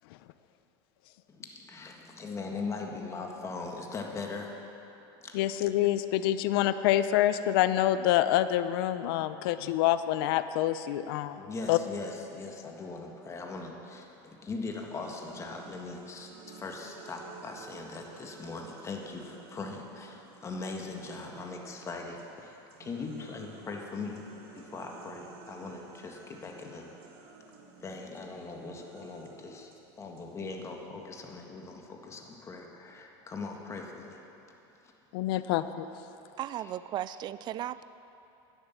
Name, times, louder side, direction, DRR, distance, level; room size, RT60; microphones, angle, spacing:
voice 1, 1.3-4.5 5.2-5.3 11.4-24.2 24.5-26.9 27.8-29.7 30.0-34.2 36.6-36.7, left 3 dB, 25° left, 1 dB, 1.7 m, -40 dB
voice 2, 5.3-11.4 11.7-11.8 35.1-35.9, left 13 dB, 75° left, 12 dB, 0.6 m, -26 dB
sound 1, 14.7-21.8 22.2-30.7, right 5 dB, 85° right, 1.8 m, -53 dB
voice 3, 36.4-37.8, right 12 dB, 35° right, 16 dB, 0.4 m, -36 dB
11.0 x 9.9 x 7.4 m, 3.0 s
supercardioid pair, 125°, 12 cm